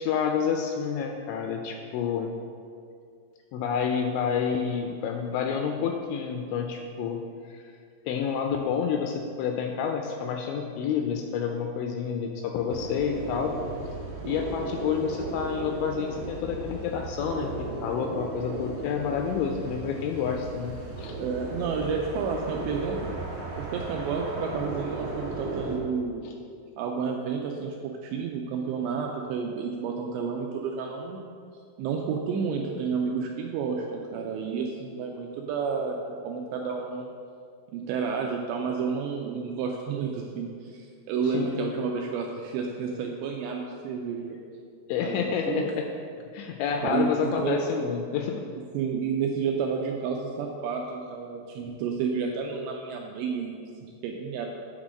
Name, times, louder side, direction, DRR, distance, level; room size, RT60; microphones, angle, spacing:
voice 1, 0.0-2.3 3.5-7.7 8.1-13.5 14.2-21.2 26.2-26.3 41.2-41.7 44.9-45.9 46.3-48.4, left 7 dB, 85° left, 3 dB, 2.6 m, -29 dB
sound 1, 12.7-25.8, right 3 dB, 65° right, 2.4 m, -36 dB
voice 2, 21.2-23.1 23.6-26.2 26.8-31.3 31.8-37.1 37.7-44.4 45.0-45.7 46.8-47.6 48.7-54.5, right 5 dB, 85° right, 1 dB, 2.6 m, -31 dB
8.9 x 3.8 x 6.3 m, 2.3 s
omnidirectional pair, 5.5 m